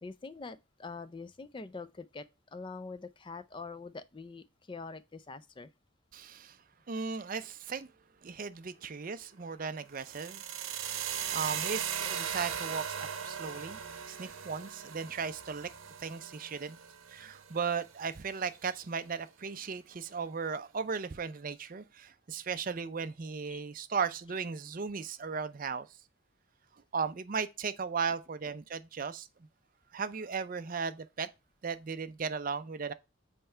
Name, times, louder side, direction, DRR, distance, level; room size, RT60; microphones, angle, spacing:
voice 1, 0.0-5.7 23.5-23.6, left 4 dB, 25° left, 0.4 m, -44 dB
voice 2, 6.1-6.6 6.9-7.9 8.2-10.4 11.3-13.8 14.1-15.7 16.0-16.8 17.1-25.9 26.9-29.3 29.9-31.3 31.6-32.9, right 5 dB, 40° right, 0.4 m, -36 dB
sound 1, 9.9-18.0, right 8 dB, 75° right, 0.9 m, -38 dB
5.7 x 4.4 x 4.3 m
head